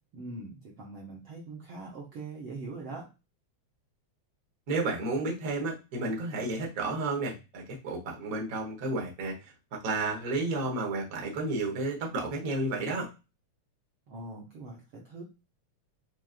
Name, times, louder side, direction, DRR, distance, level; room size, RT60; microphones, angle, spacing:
voice 1, 0.1-3.1 14.1-15.2, right 3 dB, 65° right, -4 dB, 1.3 m, -42 dB
voice 2, 4.7-13.1, right 2 dB, 90° right, -1 dB, 0.7 m, -32 dB
6.1 x 2.5 x 2.4 m, 0.28 s
omnidirectional pair, 3.4 m